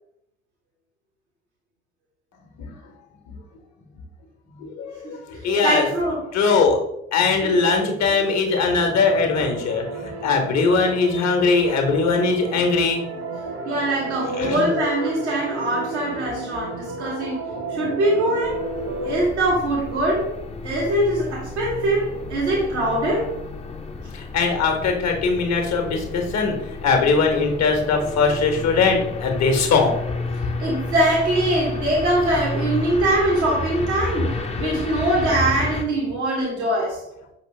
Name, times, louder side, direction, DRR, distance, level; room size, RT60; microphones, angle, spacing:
voice 1, 4.6-5.9 6.3-6.8 7.1-13.0 14.4-14.7 24.1-26.5 26.8-29.9 34.6-34.7, left 4 dB, 55° left, 4 dB, 1.1 m, -20 dB
voice 2, 5.6-6.3 13.6-18.6 19.0-20.3 20.6-23.3 30.6-37.0, right 1 dB, 85° right, -4 dB, 1.1 m, -22 dB
sound 1, 8.8-19.2, right 2 dB, 50° right, 0.8 m, -32 dB
sound 2, 18.4-35.8, left 2 dB, 20° left, 0.6 m, -31 dB
5.2 x 3.0 x 3.2 m, 0.79 s
figure-of-eight pair, 45°, 33 cm